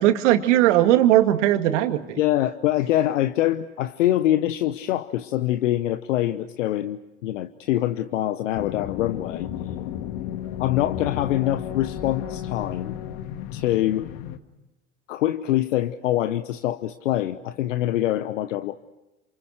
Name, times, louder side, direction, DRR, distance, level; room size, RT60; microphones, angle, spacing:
voice 1, 0.0-2.2, right 13 dB, 70° right, 7 dB, 2.2 m, -18 dB
voice 2, 2.2-9.5 10.6-12.9 13.5-14.1 15.1-18.8, left 13 dB, 75° left, 11 dB, 1.0 m, -24 dB
sound 1, 8.5-14.4, left 10 dB, 60° left, 1.9 m, -33 dB
28.5 x 27.5 x 6.4 m, 1.0 s
hypercardioid pair, 75°, 37 cm